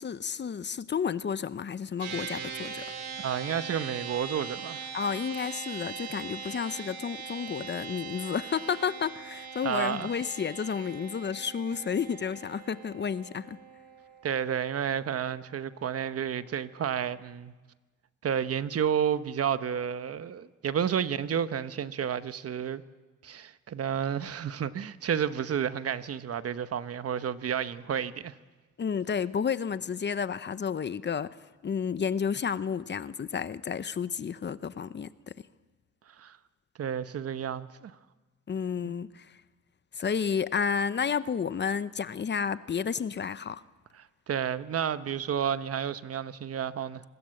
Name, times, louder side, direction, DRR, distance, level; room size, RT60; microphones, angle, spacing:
voice 1, 0.0-2.9 4.9-13.6 28.8-35.3 38.5-39.4 39.9-43.6, left 6 dB, 35° left, 0.8 m, -31 dB
sound 1, 2.0-15.5, right 6 dB, 85° right, 4.9 m, -41 dB
voice 2, 3.2-4.9 9.6-10.1 14.2-17.5 18.2-22.8 23.2-28.3 36.2-36.4 36.8-37.9 38.8-38.9 44.0-47.0, right 8 dB, 50° right, 1.1 m, -31 dB
25.0 x 20.5 x 7.8 m
cardioid pair, 90°, 30 cm